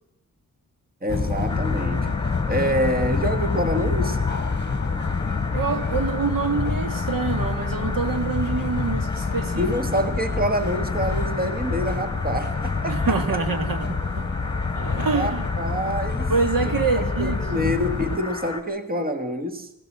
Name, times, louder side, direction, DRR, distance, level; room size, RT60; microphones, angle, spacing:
voice 1, 1.0-4.2 9.6-13.2 15.1-16.3 16.6-19.7, equal, 25° right, 1.5 m, -27 dB
sound 1, 1.1-18.2, left 4 dB, 30° left, 1.3 m, -27 dB
sound 2, 1.5-18.6, left 2 dB, 15° left, 1.9 m, -36 dB
voice 2, 5.5-9.7 10.0-10.1 12.9-14.3 14.8-15.5 16.3-17.7, right 4 dB, 65° right, 1.9 m, -26 dB
24.5 x 17.0 x 7.2 m
wide cardioid pair, 165°, 35 cm